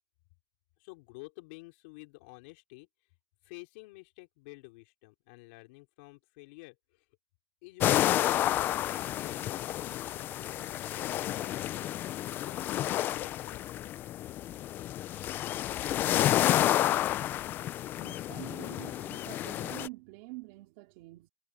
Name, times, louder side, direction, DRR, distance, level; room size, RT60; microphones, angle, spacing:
voice 1, 0.8-2.9 3.4-7.1 7.6-12.0 12.4-13.8, left 26 dB, 70° left, 4.2 m, -51 dB
sound 1, 7.8-19.9, left 13 dB, 35° left, 0.4 m, -30 dB
voice 2, 16.0-16.8 18.0-21.3, right 24 dB, 65° right, 3.9 m, -47 dB
supercardioid pair, 155°, 6 cm